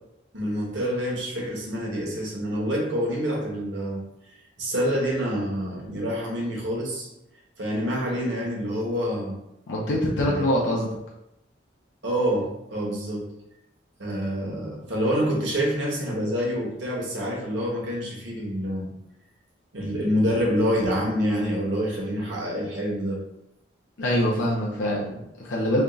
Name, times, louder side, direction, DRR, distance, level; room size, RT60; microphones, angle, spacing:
voice 1, 0.3-4.0 4.6-7.1 7.6-9.4 10.2-10.5 12.0-13.3 14.0-18.9 19.7-23.2, equal, 75° right, -3 dB, 1.1 m, -27 dB
voice 2, 9.7-10.9 24.0-25.8, left 1 dB, 80° left, -3 dB, 0.6 m, -24 dB
3.4 x 2.4 x 3.9 m, 0.85 s
head